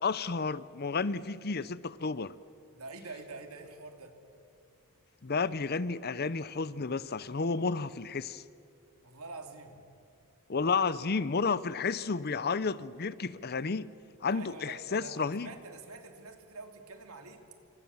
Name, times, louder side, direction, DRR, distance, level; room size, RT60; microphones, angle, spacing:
voice 1, 0.0-2.3 5.2-8.4 10.5-13.9 14.2-15.5, left 4 dB, 45° left, 17 dB, 0.6 m, -31 dB
voice 2, 2.7-4.1 9.0-9.8 14.2-17.4, right 3 dB, 75° right, 5 dB, 2.9 m, -46 dB
28.0 x 25.0 x 7.2 m, 2.5 s
head